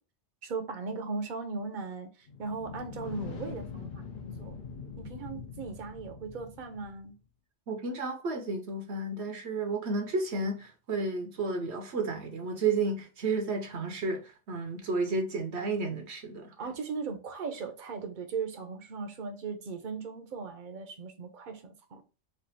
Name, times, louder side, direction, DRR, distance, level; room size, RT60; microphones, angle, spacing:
voice 1, 0.4-4.1 4.4-4.6 5.0-7.1 16.6-22.0, right 4 dB, 50° right, 0.8 m, -38 dB
sound 1, 2.3-7.1, left 5 dB, 55° left, 0.7 m, -43 dB
voice 2, 7.7-16.5, right 3 dB, 70° right, 1.0 m, -32 dB
3.3 x 2.4 x 4.0 m
omnidirectional pair, 1.2 m